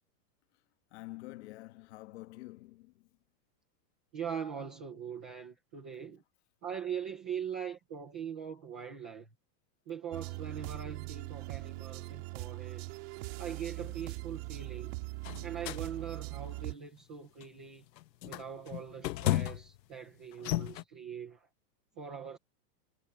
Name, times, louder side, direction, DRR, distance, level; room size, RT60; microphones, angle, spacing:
voice 1, 0.9-2.9, left 19 dB, 40° left, 1.3 m, -47 dB
voice 2, 4.1-6.2 6.6-9.3 9.9-12.9 13.4-14.9 15.4-17.8 18.2-21.5 22.0-22.4, right 8 dB, 5° right, 0.4 m, -41 dB
sound 1, 10.1-16.7, right 25 dB, 40° right, 2.8 m, -41 dB
sound 2, 13.8-14.0 15.2-15.8 16.4-16.7 17.4-17.6 18.0-19.8 20.3-20.8, left 15 dB, 80° left, 0.9 m, -34 dB
supercardioid pair, 175°, 49 cm